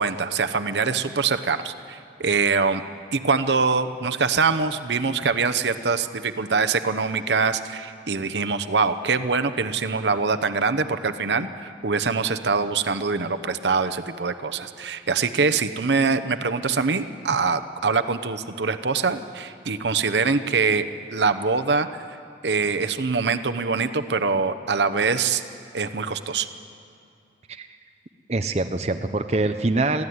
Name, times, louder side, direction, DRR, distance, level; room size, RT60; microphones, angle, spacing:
voice 1, 0.0-2.8 3.1-22.0 22.4-25.4 25.7-26.5, right 4 dB, 80° right, 9 dB, 0.9 m, -24 dB
voice 2, 28.3-30.0, right 2 dB, 35° right, 7 dB, 0.7 m, -24 dB
22.5 x 15.0 x 9.5 m, 2.4 s
head